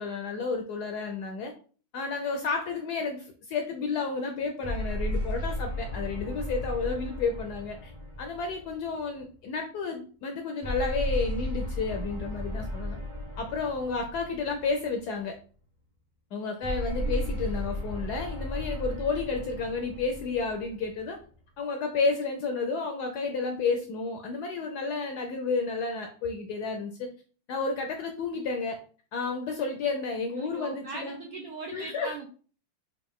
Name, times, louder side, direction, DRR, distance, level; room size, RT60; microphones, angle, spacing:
voice 1, 0.0-1.5 1.9-7.9 8.2-13.0 13.4-15.4 16.3-21.2 21.6-27.1 27.5-28.8 29.1-31.2 31.7-32.2, left 4 dB, 75° left, 4 dB, 0.9 m, -31 dB
sound 1, 4.6-9.2 10.6-15.0 16.6-21.2, left 1 dB, 30° right, 0.6 m, -34 dB
voice 2, 17.0-17.3 30.3-32.3, right 3 dB, 75° right, 1 dB, 0.8 m, -40 dB
4.3 x 2.4 x 3.5 m, 0.41 s
omnidirectional pair, 2.1 m